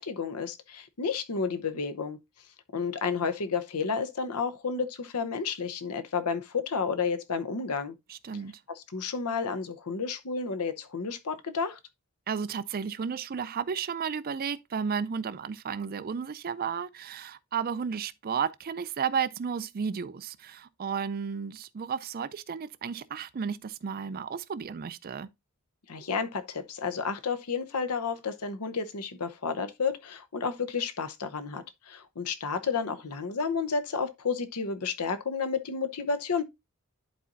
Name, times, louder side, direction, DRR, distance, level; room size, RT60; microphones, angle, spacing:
voice 1, 0.0-2.2 2.7-7.9 8.8-11.8 25.9-36.4, left 5 dB, 90° left, 0.8 m, -31 dB
voice 2, 8.1-8.5 12.3-25.3, right 6 dB, 40° right, 0.4 m, -33 dB
11.0 x 4.1 x 2.5 m
head